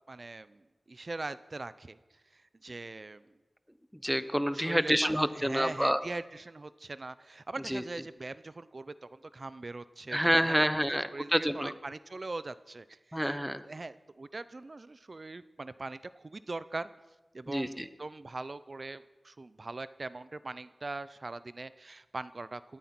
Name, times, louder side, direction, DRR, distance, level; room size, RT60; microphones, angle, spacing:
voice 1, 0.1-0.6 0.9-2.0 2.3-3.2 4.5-10.2 10.5-10.6 11.1-13.4 13.7-16.9 17.3-22.8, right 3 dB, 55° right, 15 dB, 0.5 m, -41 dB
voice 2, 4.0-6.0 7.7-7.8 10.1-11.7 13.1-13.6 17.5-17.9, equal, 5° right, 13 dB, 0.8 m, -28 dB
18.0 x 13.0 x 5.9 m, 1.1 s
wide cardioid pair, 70°, 0 cm